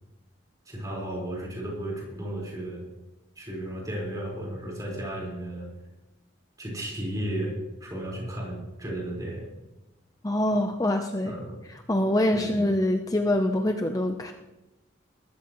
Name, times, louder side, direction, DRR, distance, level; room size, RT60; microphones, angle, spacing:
voice 1, 0.6-2.8 3.3-5.7 6.6-9.5 11.2-11.6 12.3-12.6, right 1 dB, 20° right, -3 dB, 4.5 m, -34 dB
voice 2, 10.2-11.3 11.7-14.3, left 1 dB, 20° left, 5 dB, 0.6 m, -25 dB
20.0 x 13.0 x 3.1 m, 1.0 s
head